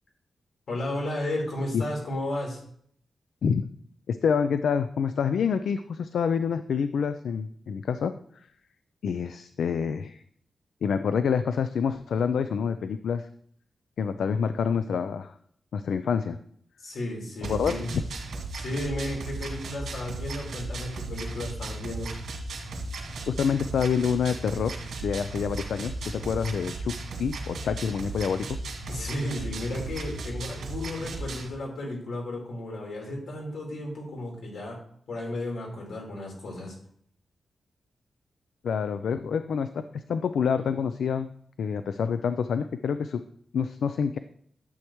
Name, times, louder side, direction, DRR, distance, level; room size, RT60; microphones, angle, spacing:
voice 1, 0.7-2.6 16.8-17.9 18.5-22.1 28.9-34.8 35.1-36.8, left 1 dB, 75° left, -1 dB, 4.0 m, -33 dB
voice 2, 4.1-8.1 9.0-10.2 10.8-13.3 14.0-15.3 15.7-16.4 17.5-17.7 23.3-28.5 38.6-41.3 41.6-43.2 43.5-44.2, left 6 dB, 90° left, 10 dB, 0.4 m, -27 dB
sound 1, 17.4-31.5, right 2 dB, 90° right, 2.2 m, -36 dB
12.0 x 7.9 x 3.1 m, 0.63 s
wide cardioid pair, 160°, 0 cm